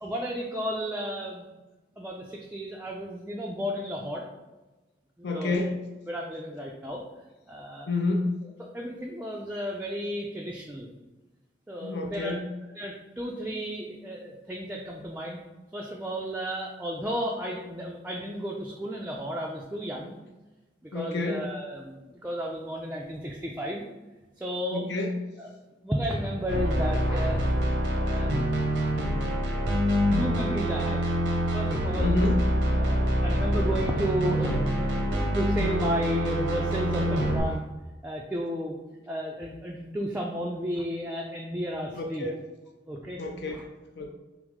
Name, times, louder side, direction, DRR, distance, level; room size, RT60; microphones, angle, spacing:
voice 1, 0.0-1.5 2.0-4.2 5.2-5.7 6.1-7.0 7.5-7.9 8.7-10.9 11.7-12.4 12.7-15.4 15.7-20.1 20.8-23.8 24.4-24.9 25.4-25.5 25.8-27.5 28.0-28.3 28.9-29.1 29.5-29.7 30.2-31.0 31.5-32.2 32.7-37.7 38.0-38.8 39.1-42.3 42.9-43.2 43.5-43.6, equal, 10° right, -2 dB, 0.4 m, -33 dB
voice 2, 5.2-5.7 7.9-8.3 11.8-12.5 20.9-21.4 24.7-25.1 32.0-32.4 42.0-42.4 43.2-44.1, left 2 dB, 65° left, 2 dB, 0.6 m, -29 dB
sound 1, 26.5-37.4, equal, 75° right, 0.8 m, -26 dB
6.0 x 2.0 x 3.6 m, 1.1 s
head